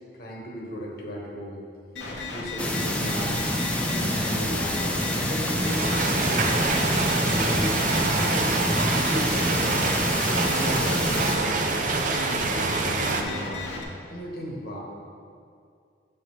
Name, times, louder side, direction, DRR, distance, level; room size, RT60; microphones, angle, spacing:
voice 1, 0.2-1.6 2.3-3.4 3.7-5.8 6.1-7.9 8.2-8.5 8.9-9.8 10.4-11.6 12.2-13.7 14.1-14.8, equal, 55° left, -1 dB, 1.2 m, -35 dB
sound 1, 2.0-13.8, left 2 dB, 75° left, 0.9 m, -34 dB
sound 2, 2.6-11.4, equal, 5° left, 0.5 m, -27 dB
sound 3, 5.4-13.2, right 4 dB, 45° right, 0.5 m, -26 dB
7.6 x 6.7 x 3.1 m, 2.3 s
head